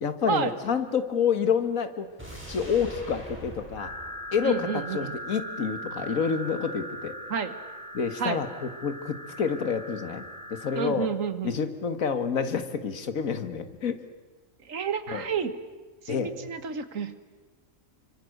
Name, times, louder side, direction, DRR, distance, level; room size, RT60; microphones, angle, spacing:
voice 1, 0.0-2.1 2.5-3.9 4.3-7.2 7.9-10.2 10.5-11.1 11.4-14.0 15.1-15.2 16.1-16.3, left 6 dB, 90° left, 10 dB, 1.9 m, -28 dB
sound 1, 2.2-5.3 5.6-5.7, right 1 dB, 10° right, 7.5 m, -43 dB
sound 2, 3.8-10.8, equal, 55° right, 5.5 m, -40 dB
voice 2, 4.4-5.2 7.3-7.6 8.2-8.4 10.8-11.6 14.7-15.5 16.1-17.1, right 6 dB, 75° right, 11 dB, 1.8 m, -30 dB
28.5 x 25.0 x 6.6 m, 1.3 s
omnidirectional pair, 1.4 m